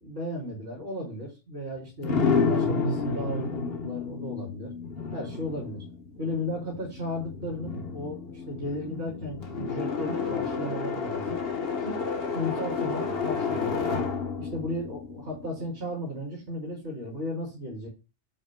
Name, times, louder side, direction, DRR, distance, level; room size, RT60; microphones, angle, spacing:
voice 1, 0.0-2.2 2.5-4.7 5.1-5.8 6.2-11.4 11.8-12.0 12.3-13.8 14.4-17.9, left 1 dB, 65° right, -3 dB, 3.4 m, -35 dB
sound 1, 2.0-15.9, left 5 dB, 55° left, 1.5 m, -30 dB
9.9 x 6.4 x 2.3 m, 0.28 s
omnidirectional pair, 1.2 m